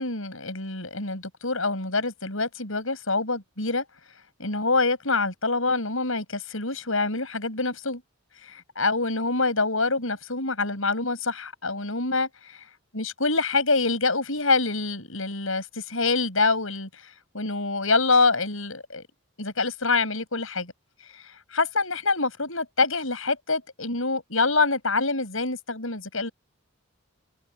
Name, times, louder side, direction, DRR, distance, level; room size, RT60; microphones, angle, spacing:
voice 1, 0.0-3.8 4.4-8.0 8.4-12.7 12.9-19.0 19.4-20.7 21.1-21.2 21.5-26.3, left 3 dB, 70° left, 7.8 m, -26 dB
head